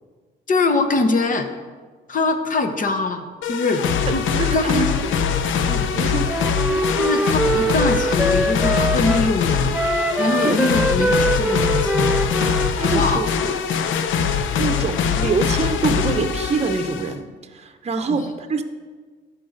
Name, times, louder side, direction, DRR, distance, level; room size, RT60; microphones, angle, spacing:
voice 1, 0.5-1.5 2.1-3.8 4.1-4.3 4.5-4.9 6.9-9.8 10.2-12.1 12.9-13.2 18.1-18.2, left 3 dB, 40° left, 6 dB, 1.1 m, -22 dB
sound 1, 3.4-17.1, left 7 dB, 80° left, 0.7 m, -22 dB
voice 2, 4.1-5.3 5.7-6.3 10.4-10.6 10.9-11.0 12.8-13.6 14.6-18.6, right 4 dB, 35° right, 7 dB, 0.8 m, -25 dB
Wind instrument woodwind instrument, 6.3-9.3 9.7-13.2, right 2 dB, 5° right, 0.4 m, -23 dB
13.0 x 5.8 x 4.0 m, 1.5 s
cardioid pair, 90°, 20 cm